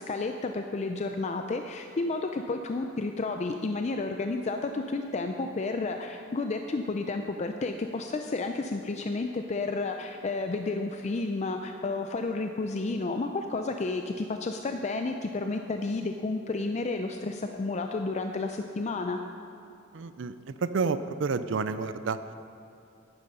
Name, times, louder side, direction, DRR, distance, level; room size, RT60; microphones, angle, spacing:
voice 1, 0.0-19.2, left 3 dB, 35° left, 5 dB, 0.4 m, -31 dB
voice 2, 19.9-20.3 20.6-22.2, right 4 dB, 70° right, 12 dB, 0.5 m, -29 dB
11.0 x 9.8 x 5.4 m, 2.7 s
head